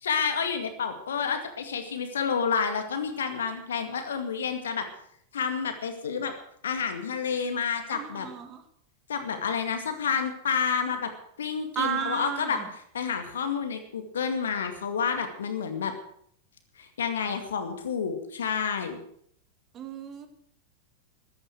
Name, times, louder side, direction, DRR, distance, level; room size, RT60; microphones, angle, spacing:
voice 1, 0.0-4.9 5.3-6.3 6.6-8.3 9.1-11.1 11.4-12.6 12.9-15.9 16.8-19.0, left 6 dB, 65° left, 7 dB, 2.2 m, -29 dB
voice 2, 7.9-8.6 11.8-12.7 19.7-20.3, right 8 dB, 30° right, 9 dB, 2.0 m, -33 dB
14.5 x 13.0 x 6.4 m, 0.68 s
figure-of-eight pair, 90°, 0 cm